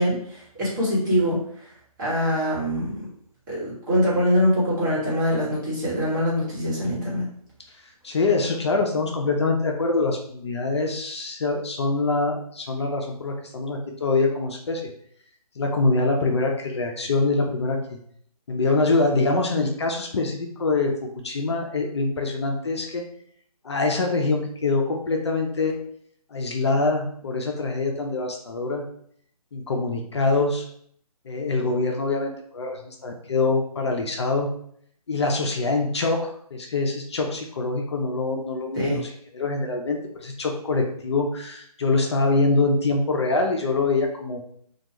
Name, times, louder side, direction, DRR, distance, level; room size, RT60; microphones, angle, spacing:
voice 1, 0.0-1.4 2.0-2.9 3.5-7.2 38.8-39.0, equal, 30° right, -7 dB, 1.1 m, -23 dB
voice 2, 8.0-14.9 15.6-18.0 18.5-20.9 21.2-23.0 23.6-25.7 26.3-28.8 29.5-30.7 31.3-34.5 35.1-39.0 39.3-44.4, left 3 dB, 45° left, 2 dB, 0.4 m, -24 dB
2.2 x 2.2 x 2.9 m, 0.65 s
figure-of-eight pair, 155°, 20 cm